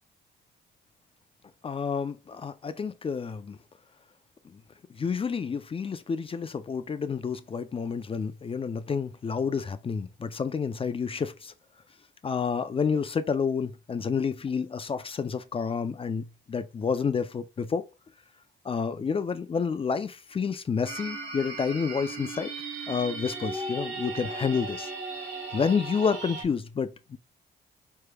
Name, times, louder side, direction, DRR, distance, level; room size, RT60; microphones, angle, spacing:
voice 1, 1.6-3.6 4.9-11.5 12.2-17.9 18.6-22.5 22.9-24.9 25.5-27.2, left 6 dB, 30° left, 0.4 m, -29 dB
sound 1, 20.8-26.4, right 3 dB, 65° right, 1.4 m, -36 dB
4.5 x 3.2 x 2.2 m
cardioid pair, 90°, 20 cm